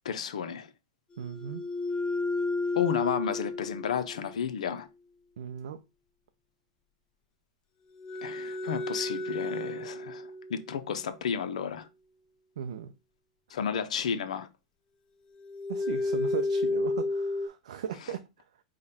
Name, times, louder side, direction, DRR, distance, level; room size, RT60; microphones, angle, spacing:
voice 1, 0.0-0.7 2.7-4.9 8.2-11.9 13.5-14.5, left 7 dB, 85° left, 0.6 m, -32 dB
sound 1, 1.2-4.5 7.9-11.3 15.4-17.5, left 2 dB, 25° left, 0.7 m, -32 dB
voice 2, 1.2-1.6 5.4-5.8 12.6-12.9 15.7-18.2, right 8 dB, 80° right, 0.5 m, -37 dB
5.0 x 2.3 x 4.1 m
hypercardioid pair, 120°, 4 cm